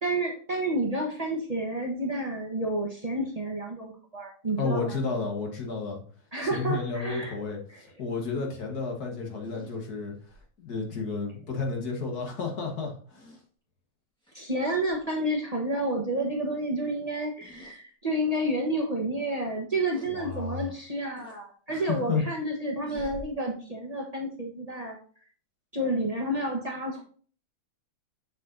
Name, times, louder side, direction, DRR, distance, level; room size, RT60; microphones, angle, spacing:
voice 1, 0.0-5.0 6.3-7.4 7.7-7.8 14.3-25.0 25.7-27.0, right 1 dB, 25° right, -1 dB, 1.1 m, -30 dB
voice 2, 4.6-6.0 6.4-10.1 10.6-13.3 20.1-20.7 21.7-22.2, left 4 dB, 75° left, 1 dB, 2.1 m, -32 dB
sound 1, 9.4-10.5 12.1-12.3 13.1-13.4 14.2-14.5 14.8-15.0 17.4-17.8 18.4-18.5 19.9-20.1 21.2-21.4 22.9-23.2, equal, 5° left, 1.7 m, -47 dB
7.0 x 6.8 x 2.7 m, 0.43 s
omnidirectional pair, 1.7 m